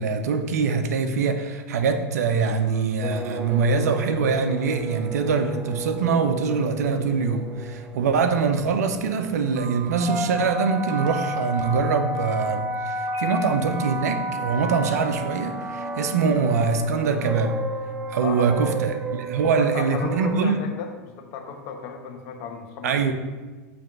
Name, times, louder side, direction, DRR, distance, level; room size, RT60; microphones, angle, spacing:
voice 1, 0.0-17.5 18.1-20.6 22.8-23.1, right 5 dB, 80° right, 0.8 m, -23 dB
sound 1, 3.0-20.4, right 2 dB, 20° right, 0.5 m, -32 dB
Telephone, 9.5-12.5 13.0-13.3 13.7-14.1, right 7 dB, 45° right, 1.3 m, -39 dB
voice 2, 18.2-18.7 19.4-23.1, left 6 dB, 55° left, 1.2 m, -35 dB
7.5 x 3.4 x 5.9 m
hypercardioid pair, 105°, 9 cm